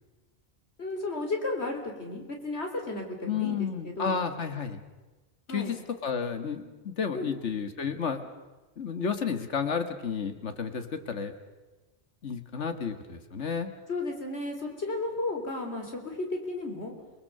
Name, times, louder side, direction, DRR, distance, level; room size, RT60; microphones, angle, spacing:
voice 1, 0.8-4.2 5.5-5.7 7.1-7.3 13.9-16.9, left 2 dB, 70° left, 3 dB, 4.0 m, -33 dB
voice 2, 3.3-4.8 5.5-5.8 6.0-8.2 8.8-11.3 12.2-13.7, left 6 dB, 85° left, 8 dB, 1.9 m, -31 dB
29.0 x 20.5 x 6.7 m, 1.2 s
omnidirectional pair, 1.2 m